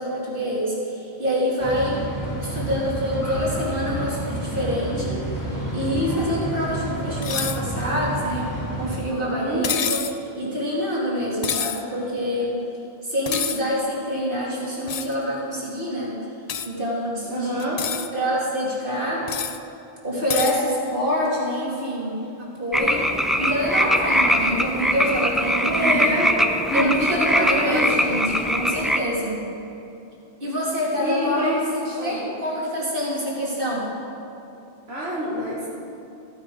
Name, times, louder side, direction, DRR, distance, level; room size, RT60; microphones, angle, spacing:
voice 1, 0.0-2.0 2.4-5.2 5.7-12.6 13.0-16.2 16.6-17.6 18.1-19.3 20.0-23.1 23.4-26.1 26.7-29.4 30.4-33.9, equal, 55° right, -5 dB, 2.9 m, -26 dB
sound 1, 1.6-9.0, right 1 dB, 80° left, 2.9 m, -29 dB
sound 2, 7.2-7.6 9.6-10.2 11.4-11.8 13.3-13.6 14.9-15.1 16.5-16.7 17.6-18.1 19.3-19.6 20.3-20.6, left 7 dB, 45° left, 0.5 m, -27 dB
voice 2, 9.2-9.7 17.3-17.8 25.6-26.4 26.7-27.9 31.0-31.6 32.0-32.2 34.9-35.7, equal, 75° right, -7 dB, 2.1 m, -26 dB
sound 3, 22.7-29.0, equal, ahead, 0.5 m, -22 dB
15.0 x 9.5 x 5.0 m, 2.8 s
omnidirectional pair, 1.1 m